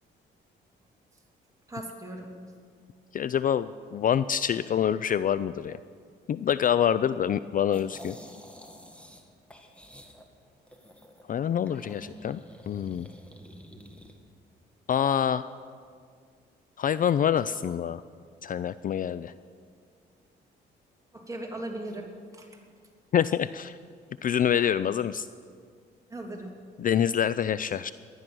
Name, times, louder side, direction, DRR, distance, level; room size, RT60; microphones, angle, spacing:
voice 1, 1.7-2.3 11.9-12.3 21.1-22.6 26.1-26.5, right 1 dB, 15° right, 0 dB, 2.9 m, -39 dB
voice 2, 3.1-5.8 6.3-8.2 11.3-12.4 12.7-13.1 14.9-15.5 16.8-18.0 18.4-19.3 23.1-23.8 24.2-25.3 26.8-27.9, left 9 dB, 45° left, 15 dB, 0.4 m, -26 dB
sound 1, 7.7-9.2 9.5-11.2 11.7-14.1, equal, 5° left, 1.8 m, -49 dB
19.0 x 11.5 x 6.2 m, 2.1 s
cardioid pair, 90°, 20 cm